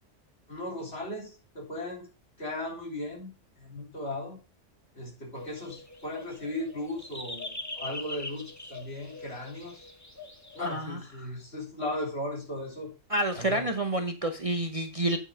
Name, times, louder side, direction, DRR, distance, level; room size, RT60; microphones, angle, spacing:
voice 1, 0.5-2.1 2.4-3.3 3.6-4.4 4.9-9.9 10.5-12.9 13.3-13.7, left 1 dB, 55° left, 0 dB, 3.8 m, -37 dB
sound 1, 5.3-10.8, left 2 dB, 15° left, 1.2 m, -42 dB
voice 2, 10.6-11.3 13.1-15.2, right 1 dB, 30° right, 6 dB, 0.8 m, -29 dB
8.9 x 5.0 x 5.5 m, 0.30 s
omnidirectional pair, 1.3 m